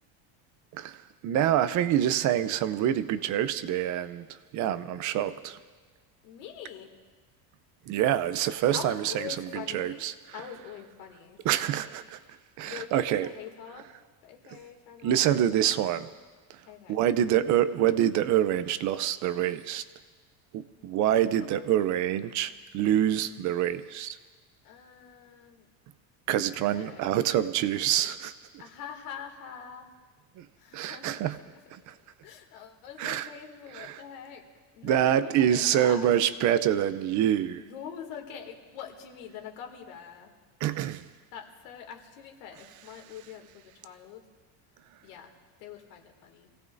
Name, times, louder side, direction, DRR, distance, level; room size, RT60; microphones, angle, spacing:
voice 1, 1.2-4.3 4.5-5.6 7.9-9.3 9.7-10.1 11.4-12.2 12.6-13.3 15.0-16.1 16.9-19.8 20.5-24.2 26.3-28.3 30.4-30.5 30.7-31.4 31.7-31.9 33.0-33.3 33.8-34.0 34.8-37.6 40.6-41.0, right 11 dB, 45° right, 0.6 m, -26 dB
voice 2, 6.2-6.9 8.7-10.0 10.3-11.9 12.6-13.9 14.2-15.3 16.7-17.0 21.1-21.8 24.6-25.7 26.4-27.2 28.6-29.9 30.6-34.5 34.8-36.1 37.6-40.4 41.3-44.2 45.0-45.3 45.6-46.5, left 8 dB, 90° left, 2.5 m, -44 dB
27.0 x 17.0 x 2.6 m
cardioid pair, 165°, 42 cm